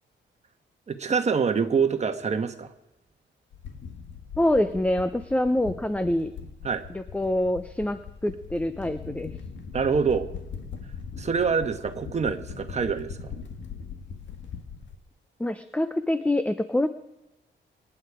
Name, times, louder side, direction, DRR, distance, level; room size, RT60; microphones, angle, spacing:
voice 1, 0.9-2.7 6.6-6.8 9.7-10.3 11.2-13.3, right 6 dB, 35° right, 7 dB, 1.3 m, -25 dB
sound 1, 3.5-14.9, left 6 dB, 70° left, 2.1 m, -40 dB
voice 2, 4.4-6.3 6.9-9.3 15.4-16.9, left 1 dB, 5° left, 11 dB, 0.6 m, -25 dB
26.0 x 9.9 x 4.9 m, 0.99 s
wide cardioid pair, 135°, 19 cm